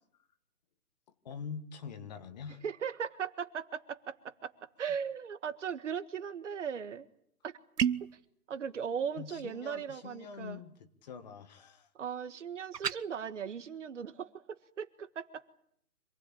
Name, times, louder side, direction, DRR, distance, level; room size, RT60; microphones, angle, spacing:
voice 1, 1.2-2.6 9.2-11.9, left 6 dB, 25° left, 10 dB, 1.5 m, -45 dB
voice 2, 2.6-4.5 4.8-7.1 7.4-7.5 8.5-10.6 11.9-15.5, right 7 dB, 50° right, 11 dB, 1.7 m, -38 dB
sound 1, 7.8-8.2 12.7-13.0, right 8 dB, 85° right, 1.1 m, -30 dB
26.5 x 20.0 x 8.7 m, 0.68 s
hypercardioid pair, 155°, 47 cm